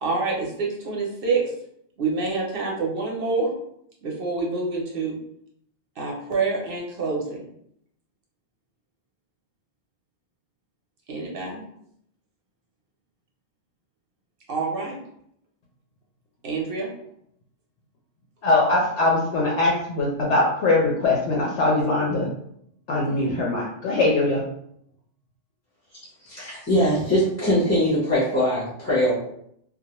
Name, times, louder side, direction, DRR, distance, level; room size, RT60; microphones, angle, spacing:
voice 1, 0.0-1.4 2.0-3.5 4.0-5.2 6.0-7.4 11.1-11.6 14.5-15.0 16.4-16.9 23.1-23.3, right 4 dB, 60° right, -1 dB, 0.7 m, -27 dB
voice 2, 18.4-22.3 22.9-24.4, left 2 dB, 75° left, -2 dB, 0.8 m, -21 dB
voice 3, 26.2-29.1, equal, 20° left, -9 dB, 0.5 m, -22 dB
2.3 x 2.1 x 2.8 m, 0.71 s
omnidirectional pair, 1.2 m